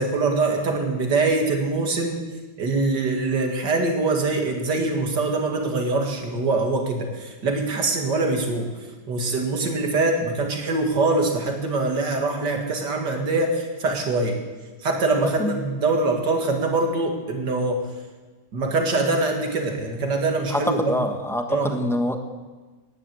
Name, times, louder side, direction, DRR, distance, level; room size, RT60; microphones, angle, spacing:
voice 1, 0.0-2.2 2.6-14.4 14.8-17.9 18.5-21.0 21.5-21.7, right 3 dB, 55° right, 2 dB, 2.6 m, -23 dB
voice 2, 15.2-15.6 20.5-22.2, left 1 dB, ahead, 4 dB, 0.8 m, -25 dB
17.5 x 10.5 x 7.7 m, 1.3 s
omnidirectional pair, 2.2 m